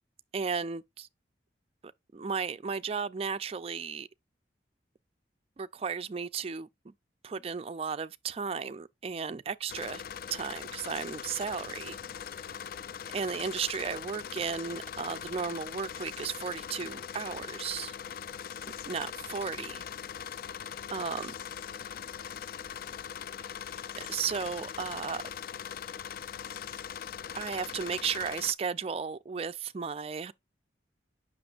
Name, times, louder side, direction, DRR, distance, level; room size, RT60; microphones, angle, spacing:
voice 1, 0.3-1.1 2.1-4.1 5.6-6.9 7.2-10.0 10.3-12.0 13.1-17.9 18.9-19.8 20.9-21.3 24.0-25.2 27.3-30.3, right 6 dB, 35° right, 0.3 m, -34 dB
sound 1, 9.7-28.5, left 8 dB, 50° left, 0.3 m, -41 dB
7.8 x 6.0 x 2.4 m
head